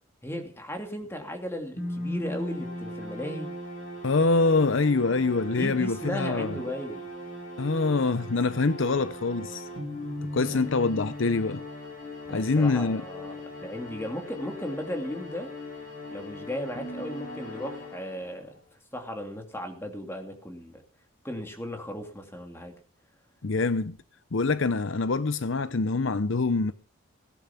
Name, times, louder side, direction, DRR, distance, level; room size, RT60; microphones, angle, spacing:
voice 1, 0.2-3.5 5.6-7.1 10.4-10.7 12.2-13.4 13.6-15.5 16.1-18.5 18.9-20.8 21.2-22.7, equal, 10° left, 2.5 m, -36 dB
sound 1, 1.8-18.5, left 1 dB, 40° left, 7.7 m, -39 dB
voice 2, 4.0-6.6 7.6-9.7 10.2-11.6 12.3-13.0 23.4-23.9 24.3-26.7, left 3 dB, 65° left, 0.7 m, -25 dB
17.5 x 10.5 x 5.8 m
head